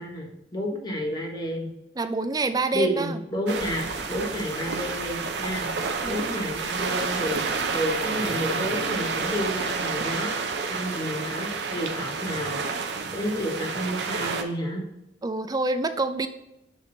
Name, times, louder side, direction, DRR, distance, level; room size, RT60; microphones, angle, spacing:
voice 1, 0.0-1.7 2.7-10.4 10.7-12.6 13.1-14.8, equal, 25° left, -1 dB, 1.3 m, -31 dB
voice 2, 2.0-3.2 6.0-6.3 15.2-16.3, right 3 dB, 20° right, 10 dB, 0.4 m, -27 dB
sound 1, 3.5-14.4, right 4 dB, 85° right, 0.7 m, -29 dB
sound 2, 3.6-10.6, equal, 5° right, 0.9 m, -49 dB
6.0 x 4.5 x 3.9 m, 0.88 s
head